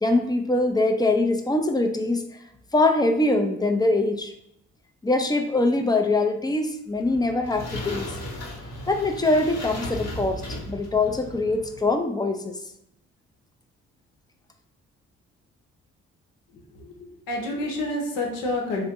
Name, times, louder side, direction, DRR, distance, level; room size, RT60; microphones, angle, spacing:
voice 1, 0.0-2.3 2.7-4.3 5.0-8.1 8.9-10.4 10.7-12.6, left 2 dB, 15° left, 5 dB, 0.4 m, -23 dB
sound 1, 6.9-11.9, left 1 dB, 55° left, 1.1 m, -36 dB
voice 2, 16.5-18.8, left 1 dB, 80° left, 0 dB, 0.8 m, -29 dB
2.8 x 2.1 x 3.5 m, 0.79 s
hypercardioid pair, 50°, 32 cm